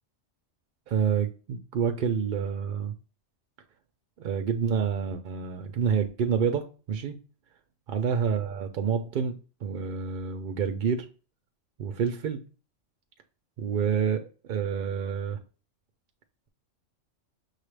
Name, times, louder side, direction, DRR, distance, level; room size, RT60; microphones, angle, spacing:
voice 1, 0.9-2.9 4.2-7.2 7.9-11.1 11.8-12.4 13.6-14.2 14.5-15.4, right 7 dB, 55° right, 6 dB, 0.6 m, -28 dB
6.2 x 2.4 x 3.2 m, 0.35 s
omnidirectional pair, 1.3 m